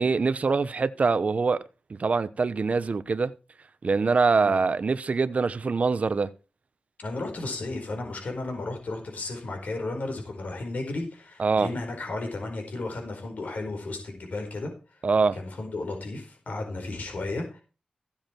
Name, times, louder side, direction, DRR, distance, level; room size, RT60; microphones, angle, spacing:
voice 1, 0.0-3.3 3.8-6.3 11.4-11.7 15.0-15.4, right 4 dB, 55° right, 0.9 m, -24 dB
voice 2, 7.0-15.1 15.3-17.6, left 2 dB, 70° left, 4.5 m, -34 dB
16.0 x 7.3 x 4.5 m
wide cardioid pair, 75°, 3 cm